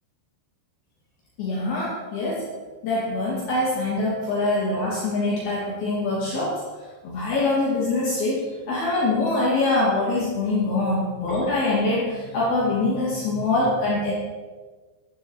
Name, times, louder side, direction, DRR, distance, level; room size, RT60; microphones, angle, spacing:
voice 1, 1.4-2.4 2.8-6.6 7.0-8.4 8.7-14.1, left 2 dB, 60° left, -7 dB, 4.6 m, -24 dB
13.0 x 12.5 x 4.8 m, 1.3 s
omnidirectional pair, 5.1 m